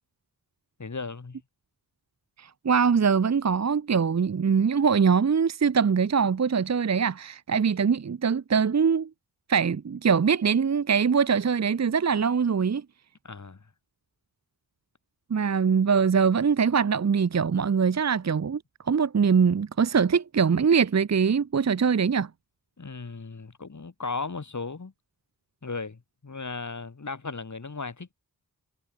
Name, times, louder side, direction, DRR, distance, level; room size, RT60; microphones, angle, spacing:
voice 1, 0.8-1.4 13.2-13.6 22.8-24.9 25.6-28.1, left 4 dB, 50° left, 4.1 m, -36 dB
voice 2, 2.4-9.1 9.5-12.8 15.3-18.6 18.9-22.3, right 6 dB, 45° right, 0.8 m, -23 dB
wide cardioid pair, 100°, 37 cm